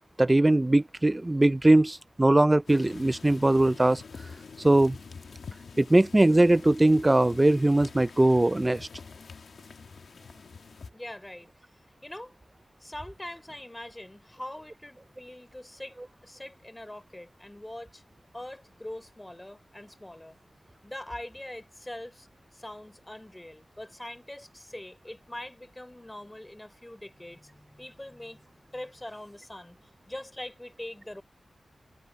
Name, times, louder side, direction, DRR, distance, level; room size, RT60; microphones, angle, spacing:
voice 1, 0.2-4.0 4.6-5.0 5.8-8.9, right 1 dB, 20° right, 0.4 m, -21 dB
sound 1, 2.7-10.9, left 5 dB, 80° left, 1.5 m, -46 dB
voice 2, 10.9-11.5 12.0-12.3 12.8-16.0 16.2-18.0 18.3-20.4 20.8-22.3 22.5-29.8 30.1-31.2, left 1 dB, 15° left, 4.2 m, -43 dB
wide cardioid pair, 125°, 0 cm